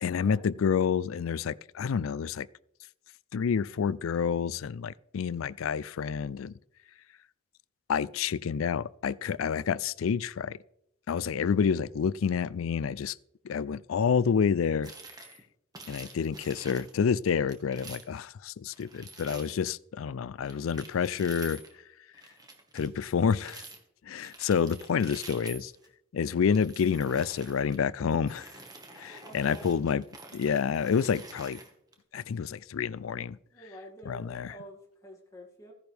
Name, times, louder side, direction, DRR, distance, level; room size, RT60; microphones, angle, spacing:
voice 1, 0.0-2.5 3.3-6.5 7.9-10.6 11.1-13.2 13.4-14.9 15.9-21.6 22.7-23.6 24.0-25.7 26.1-28.5 29.0-30.0 30.3-31.6 32.1-33.4 34.1-34.6, left 6 dB, 85° left, 0.4 m, -28 dB
sound 1, 14.8-15.4 15.7-17.0 17.5-18.2 18.7-19.6 20.4-21.8 22.1-23.8 24.2-25.9 26.4-27.8 28.2-31.9, right 3 dB, 20° right, 1.6 m, -48 dB
voice 2, 29.2-29.7 33.5-35.7, right 1 dB, 15° left, 2.3 m, -48 dB
15.5 x 10.5 x 3.4 m
head